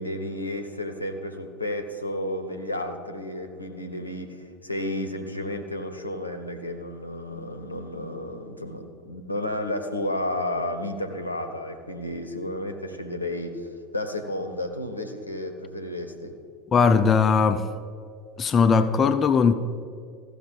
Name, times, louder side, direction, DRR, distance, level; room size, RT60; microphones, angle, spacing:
voice 1, 0.0-16.3, left 1 dB, 90° left, 0.8 m, -32 dB
voice 2, 16.7-17.7 18.4-19.5, left 5 dB, 30° left, 0.5 m, -19 dB
14.5 x 6.4 x 5.4 m
figure-of-eight pair, 75°, 0 cm